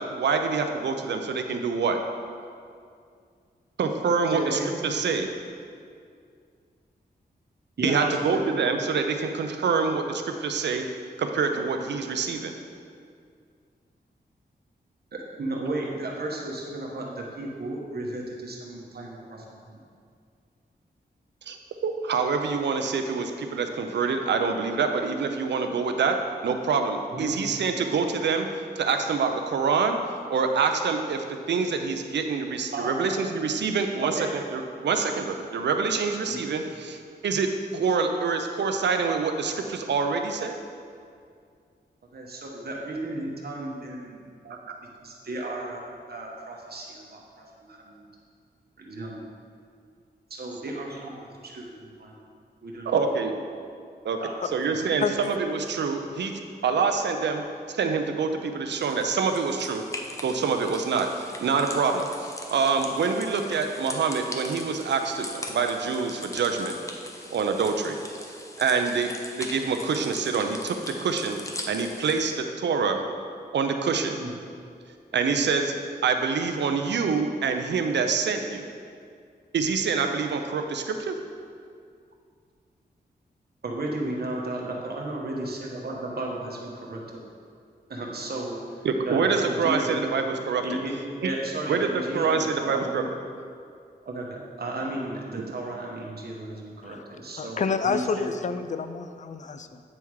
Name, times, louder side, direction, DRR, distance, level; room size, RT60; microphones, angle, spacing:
voice 1, 0.0-2.0 3.8-5.3 7.8-10.9 11.2-12.6 21.5-21.6 21.8-26.2 26.4-30.0 30.3-34.1 34.5-40.5 44.5-44.8 52.9-53.4 54.0-54.2 54.5-56.3 56.6-57.4 57.7-59.8 60.2-66.8 67.3-68.0 68.6-71.4 71.7-73.0 73.5-74.2 75.1-75.7 76.0-78.6 79.5-81.1 88.8-90.6 91.2-91.3 91.7-91.9 92.1-93.0, right 5 dB, 85° right, 5 dB, 0.5 m, -26 dB
voice 2, 4.3-4.7 7.8-8.7 15.1-19.8 27.1-27.3 32.7-33.2 34.1-34.3 36.3-36.4 42.1-44.6 45.0-45.8 46.1-48.1 48.8-49.2 50.3-51.2 51.4-52.2 52.6-53.3 54.2-54.7 74.2-74.3 83.6-87.2 87.9-88.6 89.1-90.1 90.6-90.9 91.2-93.1 94.0-98.3, right 2 dB, 65° right, -1 dB, 1.1 m, -34 dB
sound 1, 58.7-72.3, left 1 dB, 15° left, 0.7 m, -40 dB
voice 3, 97.4-99.8, left 5 dB, 45° left, 9 dB, 0.4 m, -28 dB
8.6 x 3.5 x 4.7 m, 2.2 s
cardioid pair, 70°, 18 cm